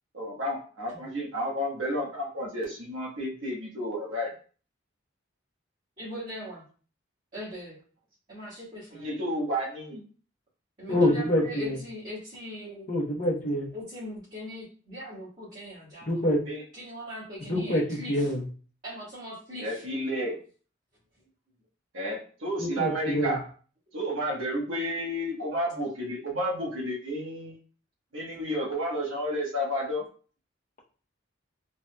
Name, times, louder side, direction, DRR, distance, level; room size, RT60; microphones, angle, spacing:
voice 1, 0.1-4.3 9.0-10.0 16.5-16.6 19.6-20.4 21.9-23.4 23.9-27.6 28.1-30.0, equal, 90° right, -3 dB, 1.2 m, -31 dB
voice 2, 6.0-6.6 7.3-7.8 8.3-9.2 10.8-12.9 13.7-16.3 16.7-18.3 18.8-19.8, equal, 40° right, -11 dB, 1.5 m, -40 dB
voice 3, 10.9-11.8 12.9-13.7 16.1-16.4 17.5-18.4 22.6-23.4, left 1 dB, 40° left, -1 dB, 0.8 m, -26 dB
3.3 x 2.8 x 2.2 m, 0.40 s
head